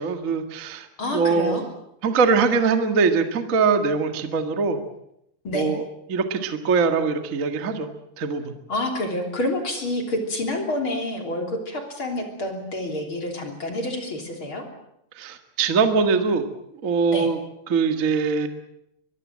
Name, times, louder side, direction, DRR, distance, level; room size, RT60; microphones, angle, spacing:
voice 1, 0.0-1.6 2.0-4.8 5.5-7.9 8.2-8.5 15.2-16.5 16.8-17.4 17.7-18.5, right 5 dB, 75° right, 7 dB, 0.7 m, -22 dB
voice 2, 1.0-1.6 5.4-5.7 8.7-14.6 17.1-17.3, left 1 dB, 30° left, 4 dB, 3.6 m, -28 dB
23.0 x 22.5 x 7.6 m, 0.77 s
omnidirectional pair, 4.9 m